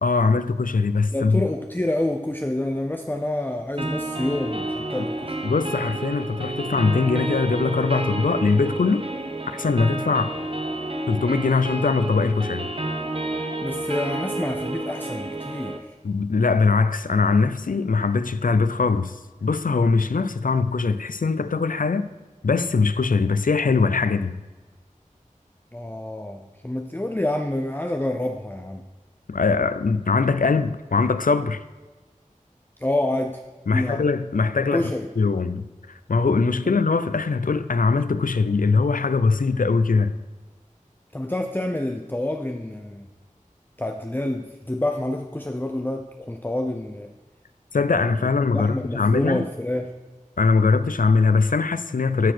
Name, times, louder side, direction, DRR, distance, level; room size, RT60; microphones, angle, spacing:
voice 1, 0.0-1.4 5.4-9.1 9.5-10.3 11.1-12.7 16.0-22.1 22.4-24.4 29.3-31.6 33.7-35.6 36.1-40.1 47.7-49.4 50.4-52.3, left 4 dB, 85° left, 0.5 m, -21 dB
voice 2, 1.1-5.4 13.6-15.8 25.7-28.8 32.8-33.4 33.7-34.0 34.6-35.1 36.7-36.8 41.1-43.1 43.8-47.1 47.9-48.0 48.5-50.0, left 1 dB, 15° left, 0.6 m, -28 dB
sound 1, 3.8-15.8, right 2 dB, 45° right, 1.1 m, -30 dB
13.5 x 4.7 x 6.1 m
wide cardioid pair, 45°, 14 cm